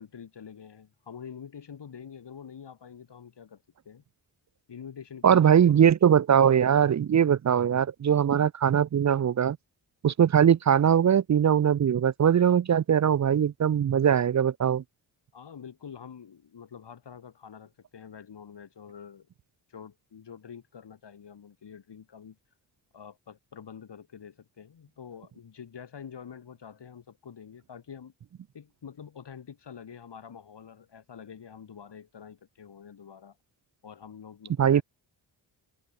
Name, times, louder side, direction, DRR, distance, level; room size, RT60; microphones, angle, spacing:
voice 1, 0.0-4.0 4.7-5.9 15.3-19.3 19.7-22.4 22.9-28.1 28.5-33.4 33.8-34.8, left 7 dB, 60° left, 2.9 m, -46 dB
voice 2, 5.2-9.6 10.0-14.8 34.6-34.8, right 8 dB, 40° right, 0.5 m, -21 dB
cardioid pair, 60°, 47 cm